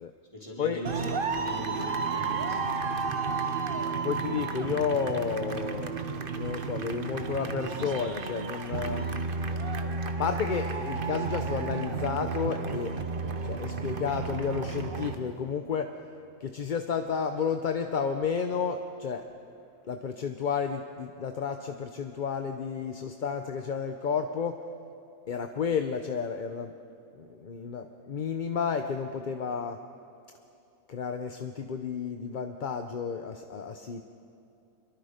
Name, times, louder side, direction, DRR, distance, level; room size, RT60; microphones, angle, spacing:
voice 1, 0.3-1.0 1.3-2.7, equal, 25° left, -4 dB, 4.6 m, -40 dB
sound 1, 0.8-15.1, right 4 dB, 45° right, 1.2 m, -32 dB
voice 2, 4.0-6.0 6.4-9.1 10.0-13.0 13.4-15.9 16.4-19.3 19.9-24.6 25.3-26.7 27.1-29.8 30.9-34.0, left 6 dB, 45° left, 6 dB, 0.8 m, -31 dB
25.5 x 23.0 x 5.1 m, 2.7 s
omnidirectional pair, 1.3 m